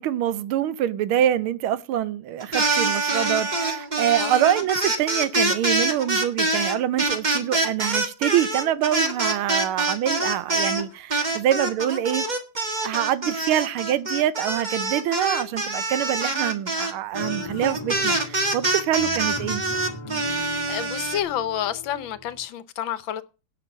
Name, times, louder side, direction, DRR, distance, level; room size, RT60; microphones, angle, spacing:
voice 1, 0.0-12.2 12.8-19.6, right 11 dB, 85° right, 1.6 m, -25 dB
sound 1, 2.4-10.8 11.1-21.2, right 2 dB, 25° right, 1.3 m, -25 dB
sound 2, 17.1-22.5, left 2 dB, 15° left, 1.6 m, -38 dB
voice 2, 20.1-23.2, left 10 dB, 70° left, 1.5 m, -30 dB
17.0 x 6.0 x 5.3 m
omnidirectional pair, 2.3 m